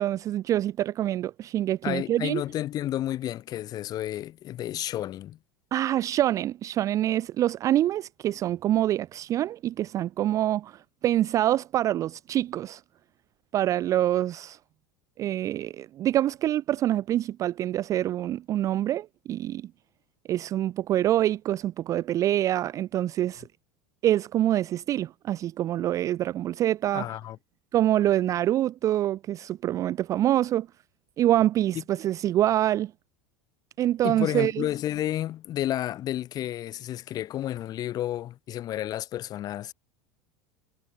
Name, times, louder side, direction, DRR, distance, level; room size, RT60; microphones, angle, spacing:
voice 1, 0.0-2.4 5.7-12.8 13.5-14.6 15.2-19.7 20.3-23.5 24.0-27.1 27.7-30.7 31.2-32.9 33.8-34.7, right 13 dB, 30° right, 0.3 m, -25 dB
voice 2, 1.8-5.4 26.9-27.4 34.0-39.7, left 13 dB, 40° left, 1.2 m, -31 dB
figure-of-eight pair, 80°, 10 cm